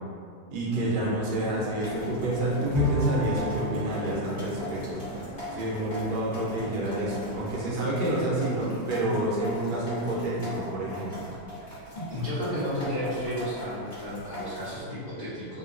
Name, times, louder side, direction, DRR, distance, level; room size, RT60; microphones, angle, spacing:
voice 1, 0.5-5.0 5.5-11.3, right 1 dB, 80° right, -5 dB, 1.3 m, -29 dB
sound 1, 0.7-7.7, left 1 dB, 50° left, 0.9 m, -42 dB
sound 2, 1.8-14.8, left 1 dB, 35° left, 1.2 m, -41 dB
Bowed string instrument, 2.7-6.5, equal, 55° right, 0.5 m, -32 dB
voice 2, 11.9-15.6, equal, 75° left, -13 dB, 0.4 m, -32 dB
3.1 x 2.2 x 2.3 m, 2.3 s
omnidirectional pair, 1.8 m